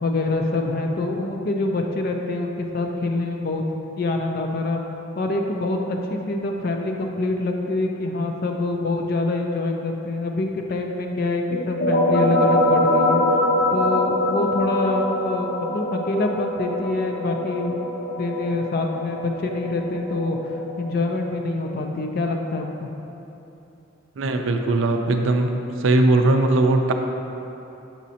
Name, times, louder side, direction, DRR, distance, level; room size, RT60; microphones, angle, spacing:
voice 1, 0.0-3.6 4.0-4.8 5.2-13.2 13.7-17.8 18.1-20.4 20.8-22.9, left 2 dB, 50° left, 2 dB, 0.4 m, -25 dB
sound 1, 11.5-20.9, left 1 dB, 75° left, 0.9 m, -23 dB
voice 2, 24.2-25.5 25.8-26.9, right 2 dB, 65° right, 4 dB, 0.4 m, -19 dB
7.2 x 5.1 x 2.8 m, 3.0 s
head